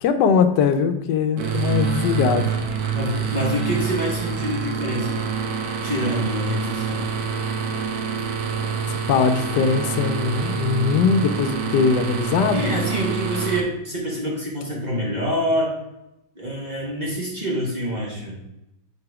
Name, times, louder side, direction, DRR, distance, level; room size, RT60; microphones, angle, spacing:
voice 1, 0.0-2.5 8.9-12.8, left 5 dB, 80° left, 8 dB, 1.2 m, -21 dB
sound 1, 1.4-13.6, right 6 dB, 65° right, 1.2 m, -26 dB
voice 2, 2.9-5.2 5.8-7.1 12.5-15.8 16.3-18.4, equal, 30° right, -3 dB, 1.1 m, -26 dB
4.8 x 4.6 x 4.7 m, 0.89 s
omnidirectional pair, 1.9 m